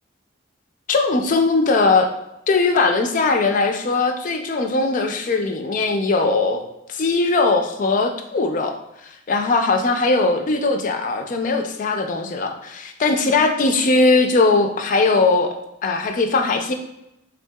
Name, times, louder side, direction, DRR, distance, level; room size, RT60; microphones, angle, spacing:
voice 1, 0.9-2.1 2.5-6.6 6.9-8.7 9.0-15.6 15.8-16.7, left 3 dB, 40° left, 5 dB, 0.3 m, -19 dB
3.7 x 2.7 x 2.2 m, 0.85 s
head